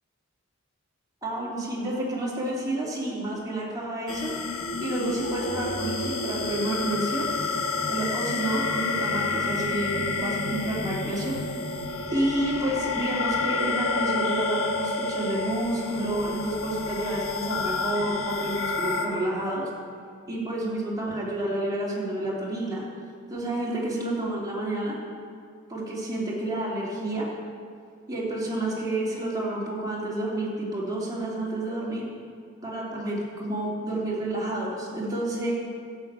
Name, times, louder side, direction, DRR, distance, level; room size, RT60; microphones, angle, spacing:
voice 1, 1.2-4.3 4.8-7.3 7.9-11.3 12.1-19.6 20.3-22.8 23.3-24.9 25.7-27.3 28.1-32.0 32.6-35.5, right 1 dB, 15° right, -6 dB, 2.9 m, -29 dB
sound 1, 4.1-19.1, left 3 dB, 70° left, 1.7 m, -29 dB
12.0 x 7.1 x 8.8 m, 2.2 s
head